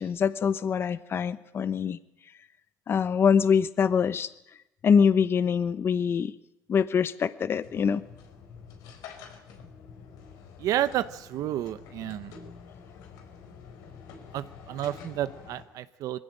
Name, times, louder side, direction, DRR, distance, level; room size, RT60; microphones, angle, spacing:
voice 1, 0.0-2.0 2.9-4.3 4.8-6.3 6.7-8.0, left 6 dB, 40° left, 14 dB, 1.0 m, -24 dB
sound 1, 7.6-15.6, left 6 dB, 90° left, 4.7 m, -47 dB
voice 2, 10.6-12.4 14.3-16.2, right 12 dB, 70° right, 13 dB, 0.9 m, -31 dB
22.0 x 16.5 x 9.0 m, 0.84 s
cardioid pair, 125°, 6 cm